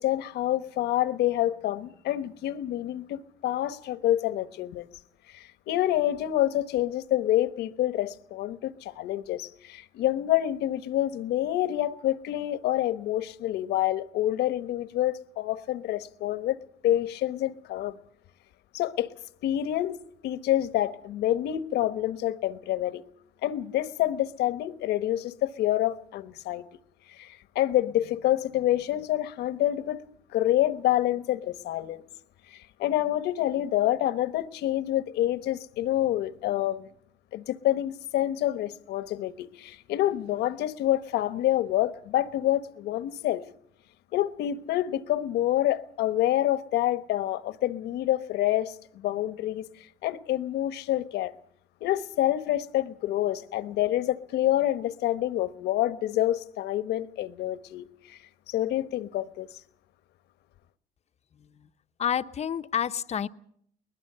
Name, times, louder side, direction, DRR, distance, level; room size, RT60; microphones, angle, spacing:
voice 1, 0.0-4.9 5.3-18.0 18.7-19.2 19.4-20.0 20.2-23.0 23.4-26.6 27.1-30.0 30.3-32.0 32.5-36.9 37.3-43.4 44.1-49.7 50.0-51.3 51.8-58.2 58.5-59.5, left 13 dB, 80° left, 1.2 m, -27 dB
voice 2, 62.0-63.3, left 9 dB, 40° left, 0.9 m, -28 dB
21.5 x 20.5 x 6.8 m
cardioid pair, 110°, 17 cm